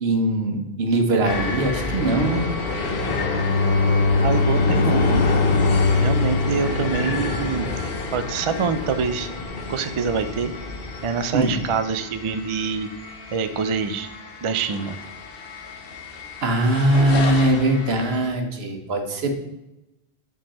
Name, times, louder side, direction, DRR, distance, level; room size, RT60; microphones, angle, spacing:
voice 1, 0.0-2.4 11.3-11.5 16.4-19.3, right 1 dB, 75° right, 4 dB, 1.2 m, -21 dB
sound 1, 1.2-18.3, left 3 dB, 65° left, 1.0 m, -29 dB
Bowed string instrument, 2.7-7.9, left 3 dB, 25° left, 1.5 m, -22 dB
voice 2, 4.2-5.3 6.0-7.7 8.1-9.3 9.7-10.5 11.0-12.9 13.3-14.1 14.4-15.0, right 6 dB, 55° right, 10 dB, 0.3 m, -25 dB
7.7 x 3.8 x 4.2 m, 0.93 s
omnidirectional pair, 1.1 m